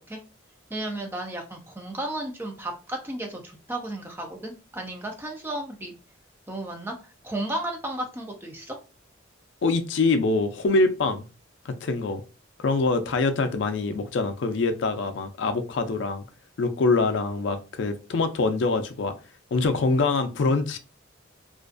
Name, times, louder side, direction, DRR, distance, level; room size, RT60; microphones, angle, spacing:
voice 1, 0.7-6.0 6.5-8.7, right 1 dB, 10° right, 0.4 m, -34 dB
voice 2, 9.6-11.2 11.7-12.2 12.6-16.2 16.6-19.1 19.5-20.8, left 3 dB, 65° left, 0.4 m, -24 dB
2.4 x 2.3 x 2.4 m
head